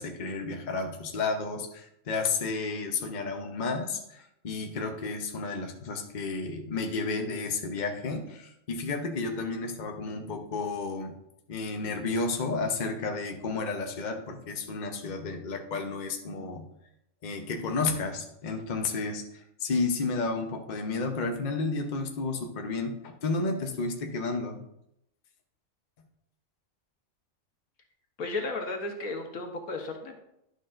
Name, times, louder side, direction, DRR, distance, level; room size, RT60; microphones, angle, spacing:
voice 1, 0.0-11.2 11.5-16.7 17.2-24.6, left 3 dB, 40° left, 4 dB, 0.8 m, -32 dB
voice 2, 28.2-30.2, left 2 dB, 80° left, 3 dB, 1.5 m, -34 dB
11.0 x 6.5 x 2.5 m, 0.79 s
omnidirectional pair, 1.4 m